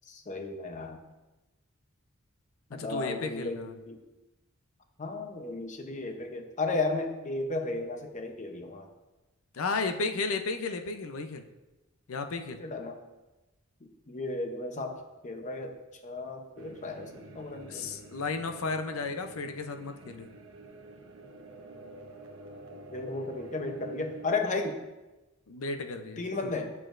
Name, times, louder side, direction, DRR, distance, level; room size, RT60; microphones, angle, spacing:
voice 1, 0.1-1.0 2.7-4.0 5.0-8.9 12.6-13.0 13.8-18.0 22.9-24.8 26.2-26.7, left 3 dB, 35° left, 5 dB, 0.7 m, -34 dB
voice 2, 2.7-3.8 9.5-11.4 12.1-12.6 17.7-20.3 25.5-26.2, left 4 dB, 70° left, 7 dB, 0.6 m, -33 dB
sound 1, 16.6-24.3, right 1 dB, 90° right, 0.8 m, -48 dB
8.4 x 6.7 x 2.5 m, 1.1 s
head